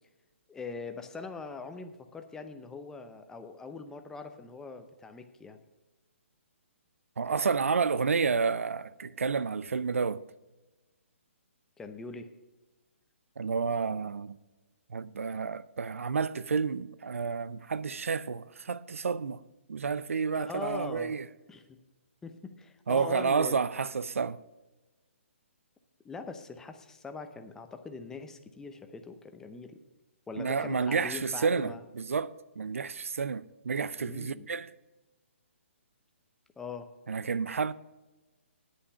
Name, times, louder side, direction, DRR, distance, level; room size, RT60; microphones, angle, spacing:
voice 1, 0.5-5.6 11.8-12.3 20.3-21.2 21.5-21.8 22.2-23.7 26.0-29.8 30.3-31.8 34.0-34.5 36.6-36.9, left 4 dB, 5° left, 0.7 m, -42 dB
voice 2, 7.2-10.2 13.4-14.4 14.9-19.4 19.7-21.3 22.9-24.4 30.4-34.7 37.1-37.7, right 5 dB, 80° right, 0.5 m, -30 dB
9.8 x 8.7 x 5.6 m
hypercardioid pair, 145°, 7 cm